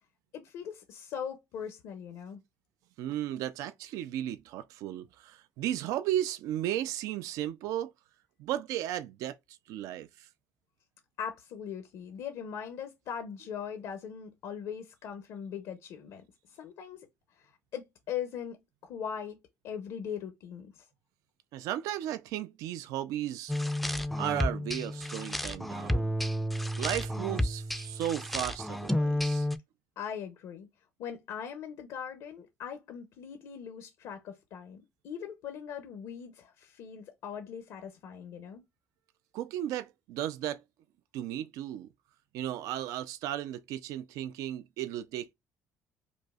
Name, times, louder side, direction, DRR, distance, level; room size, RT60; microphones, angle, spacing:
voice 1, 0.3-2.4 11.2-16.2 16.5-17.1 17.4-18.6 18.8-19.4 19.6-20.8 30.0-30.7 31.0-38.6, left 8 dB, 80° left, 0.7 m, -40 dB
voice 2, 3.0-7.9 8.4-9.4 9.7-10.3 21.5-23.5 24.2-26.1 26.8-29.5 39.3-40.6 41.1-41.9 42.3-45.3, right 12 dB, 85° right, 0.3 m, -35 dB
sound 1, 23.5-29.6, equal, ahead, 0.3 m, -31 dB
5.1 x 2.0 x 2.3 m
cardioid pair, 115°, 6 cm